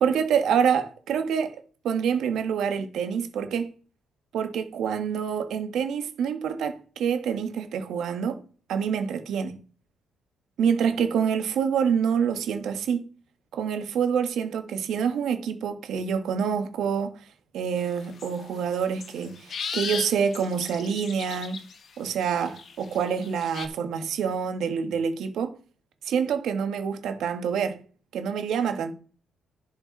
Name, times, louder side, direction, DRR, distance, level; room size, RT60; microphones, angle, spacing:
voice 1, 0.0-1.6 1.8-3.7 4.3-8.4 8.7-9.6 10.6-13.1 13.5-17.1 17.5-21.6 22.0-25.5 26.1-27.8 28.1-28.9, right 7 dB, 75° right, 1.6 m, -26 dB
sound 1, 17.9-18.3 18.7-21.8 22.1-23.7, left 6 dB, 55° left, 1.5 m, -36 dB
11.0 x 5.7 x 4.7 m
cardioid pair, 90°, 0 cm